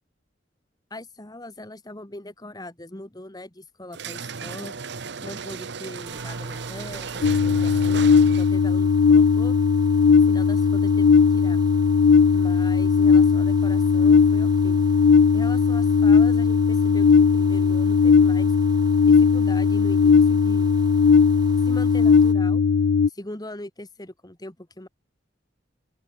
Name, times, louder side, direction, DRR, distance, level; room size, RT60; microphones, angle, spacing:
voice 1, 0.9-4.7 5.2-8.1 8.4-9.6 10.1-11.6 12.3-14.8 15.3-18.5 19.0-20.8 21.6-22.6 23.1-24.9, left 1 dB, 20° left, 2.0 m, -40 dB
sound 1, 3.9-8.7, right 5 dB, 65° right, 1.0 m, -35 dB
sound 2, 6.0-22.3, right 3 dB, 20° right, 4.5 m, -46 dB
sound 3, 7.2-23.1, left 5 dB, 70° left, 0.4 m, -18 dB
open air
head